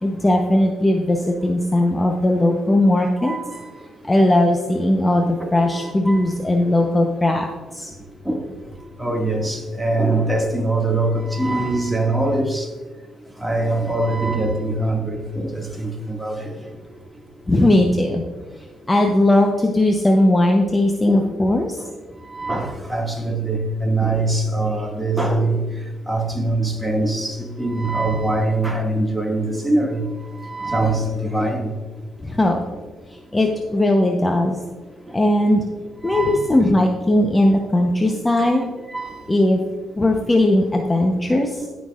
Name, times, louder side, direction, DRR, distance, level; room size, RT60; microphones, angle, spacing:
voice 1, 0.0-3.3 4.0-7.9 17.5-18.2 18.9-21.8 32.2-32.6 33.1-34.6 35.1-35.7 36.0-38.7 39.3-39.6 40.0-41.7, left 1 dB, 15° left, 2 dB, 0.8 m, -18 dB
voice 2, 3.2-3.6 5.4-5.5 5.8-6.2 8.3-8.4 9.0-12.7 13.4-16.5 21.1-21.2 22.3-25.6 26.1-30.0 30.4-31.7 36.1-36.5 38.4-38.5 38.9-39.2, right 2 dB, 5° right, 0 dB, 1.9 m, -23 dB
15.5 x 6.0 x 2.4 m, 1.3 s
cardioid pair, 90°, 0 cm